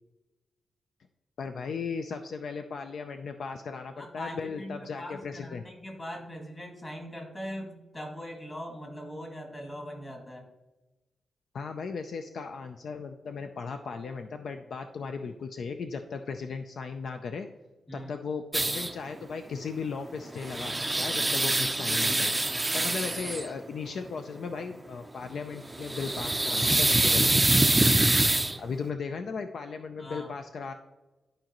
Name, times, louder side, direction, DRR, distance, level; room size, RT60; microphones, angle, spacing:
voice 1, 1.4-5.6 11.5-17.5 17.9-22.3 22.7-27.3 28.6-30.7, left 5 dB, 65° left, 6 dB, 0.4 m, -36 dB
voice 2, 4.0-10.5 17.9-18.1 22.7-23.0 26.8-27.0 30.0-30.3, equal, 25° left, 0 dB, 1.9 m, -41 dB
sound 1, 18.5-18.9 20.2-23.5 25.7-28.6, right 2 dB, 15° right, 0.4 m, -25 dB
12.0 x 5.0 x 3.0 m, 1.1 s
wide cardioid pair, 130°, 0 cm